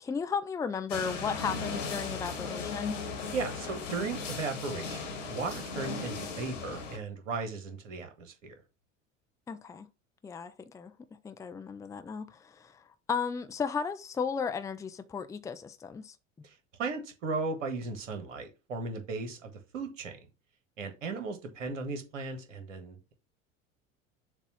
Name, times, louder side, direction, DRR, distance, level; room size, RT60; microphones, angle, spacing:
voice 1, 0.0-3.0 9.5-9.9 10.2-10.9 11.2-16.2, left 6 dB, 10° left, 0.4 m, -35 dB
sound 1, 0.9-7.0, left 4 dB, 75° left, 1.4 m, -37 dB
voice 2, 3.3-8.5 16.8-20.2 20.8-23.1, right 3 dB, 70° right, 1.4 m, -36 dB
6.9 x 2.4 x 5.5 m
figure-of-eight pair, 70°, 38 cm